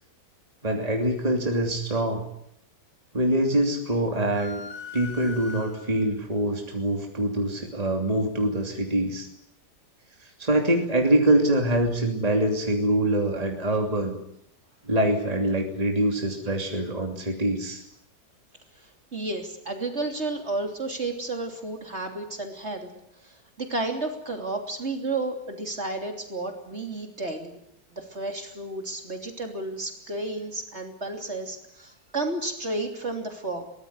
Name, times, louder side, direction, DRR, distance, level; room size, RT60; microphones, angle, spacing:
voice 1, 0.6-2.2 3.1-4.6 4.9-9.3 10.4-14.2 14.9-17.8, right 1 dB, 20° right, 2 dB, 3.0 m, -24 dB
sound 1, 4.3-6.2, left 4 dB, 90° left, 3.9 m, -40 dB
voice 2, 18.8-22.9 23.2-27.6 27.9-33.7, right 2 dB, 40° right, 4 dB, 3.5 m, -32 dB
23.0 x 19.0 x 9.8 m, 0.74 s
omnidirectional pair, 1.8 m